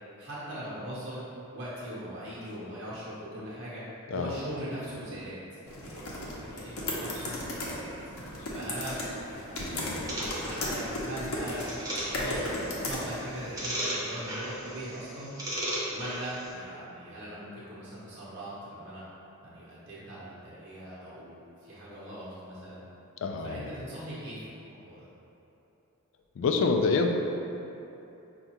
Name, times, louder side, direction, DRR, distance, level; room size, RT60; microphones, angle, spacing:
voice 1, 0.2-1.2 1.5-3.8 4.1-5.4 5.6-7.3 7.7-8.0 8.5-9.0 9.3-10.0 10.4-11.7 12.0-15.3 15.9-19.0 19.4-22.8 23.4-25.1, right 1 dB, 55° right, -9 dB, 0.8 m, -40 dB
sound 1, 5.7-13.5, left 1 dB, 75° left, 0.7 m, -35 dB
voice 2, 9.6-10.3 23.2-23.7 26.4-27.1, left 4 dB, 60° left, 3 dB, 0.3 m, -28 dB
sound 2, 10.1-16.5, right 1 dB, 15° right, 0.6 m, -37 dB
5.2 x 2.3 x 2.9 m, 2.9 s
head